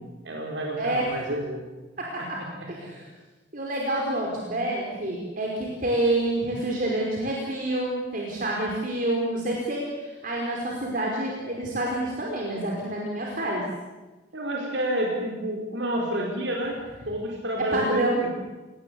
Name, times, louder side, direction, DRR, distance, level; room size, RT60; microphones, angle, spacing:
voice 1, 0.2-1.7 2.2-2.9 14.3-18.3, right 1 dB, 80° right, 0 dB, 4.9 m, -30 dB
voice 2, 0.8-1.3 2.0-2.4 2.7-3.0 3.5-13.6 17.7-18.2, right 1 dB, 50° right, -2 dB, 5.1 m, -28 dB
30.0 x 19.5 x 8.6 m, 1.2 s
head